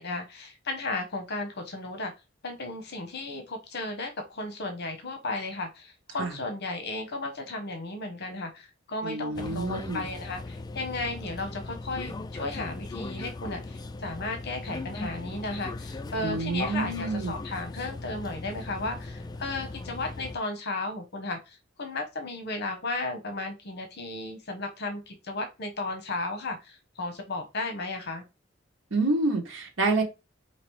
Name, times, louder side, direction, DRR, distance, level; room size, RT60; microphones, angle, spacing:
voice 1, 0.0-2.1 2.4-28.2, left 2 dB, 55° left, 5 dB, 1.0 m, -34 dB
voice 2, 9.0-10.0 16.2-17.3 28.9-30.0, right 3 dB, 80° right, 0 dB, 1.2 m, -28 dB
sound 1, 9.3-20.4, left 2 dB, 20° left, 0.3 m, -38 dB
5.1 x 2.9 x 3.1 m, 0.25 s
head